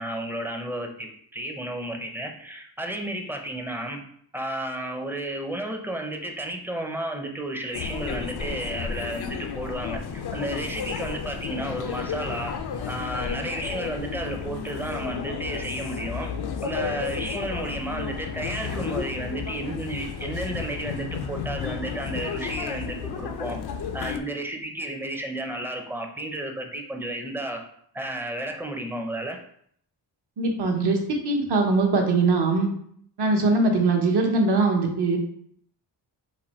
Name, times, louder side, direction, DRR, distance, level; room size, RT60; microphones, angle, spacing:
voice 1, 0.0-4.0 4.3-12.6 12.9-16.3 16.6-23.6 23.9-27.6 27.9-29.4, right 1 dB, 5° right, 2 dB, 0.5 m, -32 dB
sound 1, 7.7-24.2, left 6 dB, 65° left, 0.5 m, -32 dB
voice 2, 30.4-32.7 33.2-35.2, right 3 dB, 65° right, 2 dB, 1.0 m, -21 dB
4.2 x 2.6 x 4.2 m, 0.66 s
wide cardioid pair, 125°, 43 cm